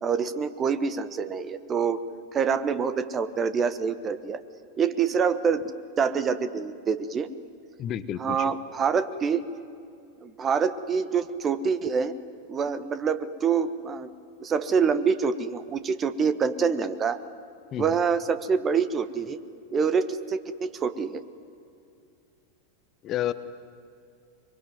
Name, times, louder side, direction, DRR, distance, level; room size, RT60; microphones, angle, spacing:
voice 1, 0.0-2.0 2.3-4.4 4.8-5.6 6.0-7.3 8.2-9.4 10.2-12.1 12.5-14.1 14.4-17.2 17.8-19.4 19.7-21.2, right 6 dB, 25° right, 13 dB, 1.2 m, -26 dB
voice 2, 7.8-8.5 17.7-17.9 23.0-23.3, left 11 dB, 30° left, 13 dB, 1.0 m, -30 dB
23.5 x 23.5 x 9.5 m, 2.4 s
figure-of-eight pair, 90°, 0 cm